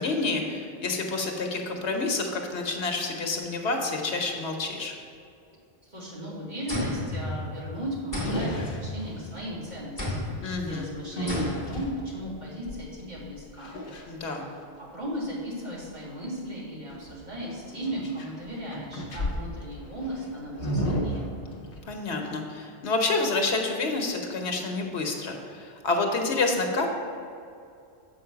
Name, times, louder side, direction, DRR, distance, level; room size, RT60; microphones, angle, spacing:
voice 1, 0.0-4.9 10.4-10.9 14.1-14.4 21.9-26.9, left 3 dB, 85° left, 2 dB, 1.3 m, -28 dB
voice 2, 5.9-13.7 14.3-14.5 14.8-21.3, equal, 45° right, -6 dB, 2.0 m, -36 dB
sound 1, 6.7-7.7 8.1-9.4 10.0-10.5 11.3-11.9, left 1 dB, 15° left, 2.1 m, -33 dB
Monster gargling and roars, 7.4-7.7 8.1-9.4 10.3-14.0 16.9-18.4 18.7-22.0, equal, 55° left, 1.1 m, -33 dB
7.6 x 4.7 x 5.8 m, 2.5 s
omnidirectional pair, 1.1 m